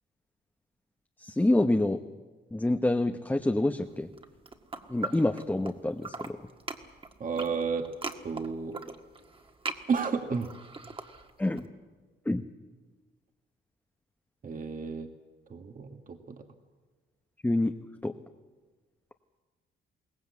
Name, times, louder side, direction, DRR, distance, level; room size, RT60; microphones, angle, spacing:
voice 1, 1.2-2.0 2.5-4.1 4.9-6.4 11.4-11.6 12.3-12.4 17.4-17.7 18.0-18.1, left 1 dB, 10° left, 6 dB, 0.9 m, -27 dB
sound 1, 4.1-5.7 6.0-11.6, right 3 dB, 25° right, 1.7 m, -40 dB
voice 2, 7.2-7.9 8.2-8.8 9.9-10.5 14.4-15.1 15.5-16.4, right 5 dB, 45° right, 5 dB, 1.6 m, -32 dB
22.5 x 18.0 x 8.4 m, 1.4 s
cardioid pair, 90°, 20 cm